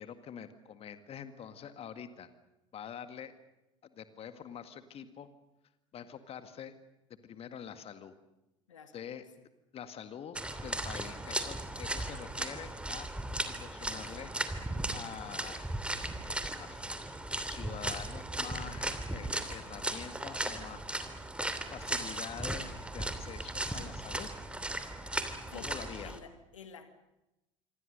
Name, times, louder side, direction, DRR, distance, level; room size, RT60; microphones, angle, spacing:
voice 1, 0.0-2.3 2.7-3.3 3.9-5.3 5.9-6.7 7.2-8.1 8.9-9.2 9.7-13.1 13.5-14.3 14.9-15.7 16.6-17.2 17.4-20.8 21.7-24.3 25.5-26.1, left 8 dB, 40° left, 10 dB, 1.9 m, -46 dB
voice 2, 8.7-9.1 25.5-26.9, left 6 dB, 75° left, 9 dB, 2.0 m, -50 dB
sound 1, 10.4-26.2, right 1 dB, 5° right, 3.0 m, -37 dB
26.0 x 26.0 x 6.7 m, 0.96 s
figure-of-eight pair, 65°, 16 cm